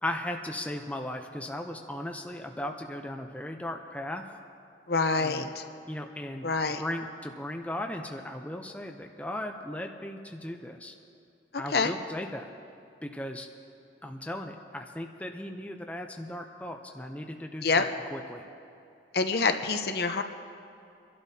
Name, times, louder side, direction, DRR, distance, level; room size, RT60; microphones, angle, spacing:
voice 1, 0.0-4.2 5.2-5.5 5.8-6.5 6.8-10.9 11.6-12.5 13.0-13.5 14.0-17.8 18.1-18.4, left 1 dB, 10° left, 3 dB, 0.5 m, -37 dB
voice 2, 4.9-5.6 6.4-6.8 11.7-11.9 17.6-17.8 19.1-20.2, left 4 dB, 60° left, 7 dB, 0.7 m, -26 dB
26.5 x 12.0 x 2.8 m, 2.6 s
head